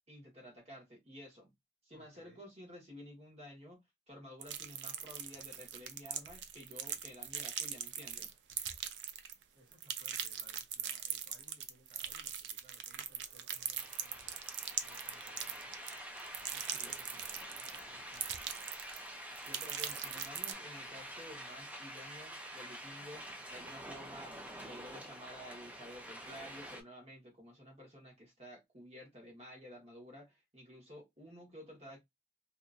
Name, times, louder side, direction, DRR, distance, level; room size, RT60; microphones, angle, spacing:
voice 1, 0.1-1.5 1.8-8.4 16.7-17.0 19.4-32.0, equal, 35° right, 1.3 m, -52 dB
voice 2, 1.9-2.4 9.5-14.4 14.7-15.7 16.4-18.7, equal, 55° right, 1.5 m, -64 dB
sound 1, 4.4-9.4 9.7-17.8 18.1-19.1 19.4-20.5, right 9 dB, 85° right, 0.4 m, -41 dB
sound 2, 13.8-26.8, right 1 dB, 10° right, 0.4 m, -47 dB
2.8 x 2.5 x 2.5 m
head